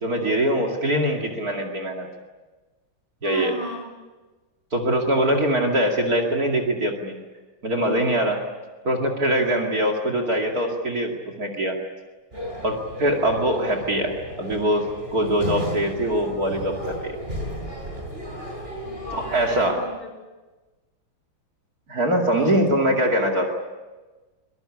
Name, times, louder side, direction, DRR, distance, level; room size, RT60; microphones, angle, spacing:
voice 1, 0.0-2.1 3.2-3.5 4.7-7.1 7.6-8.4 8.8-11.8 12.6-16.7 17.0-17.2 19.1-19.9 21.9-23.5, right 1 dB, 45° right, 5 dB, 2.8 m, -23 dB
voice 2, 3.2-3.9 18.8-20.1 22.3-22.6, left 2 dB, 25° left, 2 dB, 6.6 m, -36 dB
sound 1, 12.3-19.7, equal, 25° right, 8.1 m, -34 dB
23.5 x 21.5 x 9.8 m, 1.2 s
omnidirectional pair, 2.3 m